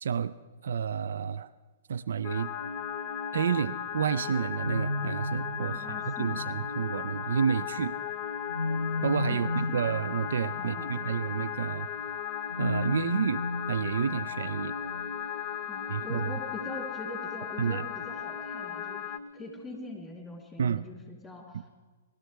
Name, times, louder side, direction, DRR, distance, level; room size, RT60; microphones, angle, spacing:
voice 1, 0.0-0.4 0.6-1.5 1.9-2.5 3.3-8.0 9.0-11.9 12.6-14.8 15.9-16.3 17.6-17.9 20.6-20.8 21.5-21.6, right 7 dB, 65° right, 14 dB, 0.3 m, -30 dB
sound 1, 2.2-19.9, left 2 dB, 90° left, 0.6 m, -37 dB
sound 2, 2.2-19.2, left 10 dB, 35° left, 0.5 m, -36 dB
voice 2, 5.7-6.4 9.3-9.8 10.6-11.1 15.7-21.6, left 2 dB, 5° left, 0 dB, 3.2 m, -43 dB
20.5 x 12.5 x 3.3 m, 1.3 s
figure-of-eight pair, 115°, 0 cm